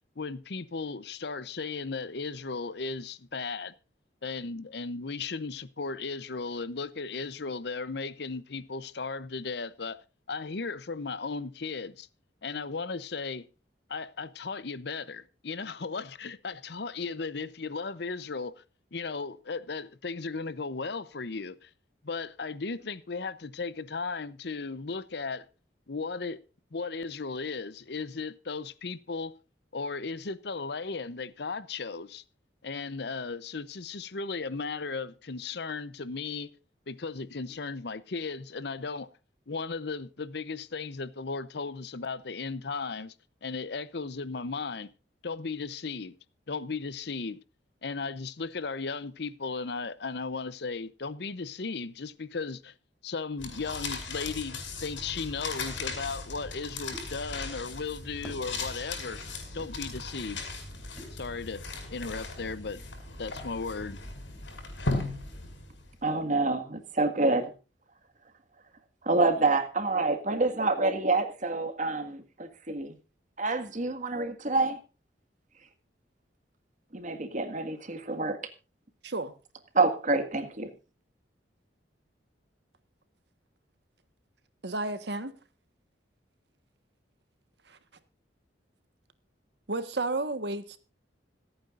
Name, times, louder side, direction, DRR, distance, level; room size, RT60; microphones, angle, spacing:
voice 1, 0.2-3.7 4.2-10.0 10.3-12.1 12.4-13.5 13.9-18.6 18.9-21.7 22.0-25.5 25.9-26.4 26.7-29.3 29.7-32.2 32.6-36.5 36.9-39.1 39.5-43.1 43.4-44.9 45.2-46.1 46.5-47.4 47.8-52.7 53.0-59.2 59.5-60.4 61.1-61.6 61.9-62.8 63.2-64.0, left 4 dB, 60° left, 0.8 m, -36 dB
sound 1, 53.4-66.0, left 3 dB, 85° left, 5.1 m, -37 dB
sound 2, 56.9-57.1 58.2-58.5 59.6-59.7 61.0-61.2, equal, 5° left, 3.8 m, -44 dB
voice 2, 66.0-67.5 69.0-72.9 73.4-74.8 76.9-78.4 79.7-80.7, right 3 dB, 45° right, 1.8 m, -27 dB
voice 3, 84.6-85.3 87.7-87.8 89.7-90.8, right 2 dB, 65° right, 1.4 m, -32 dB
26.0 x 8.9 x 2.5 m
head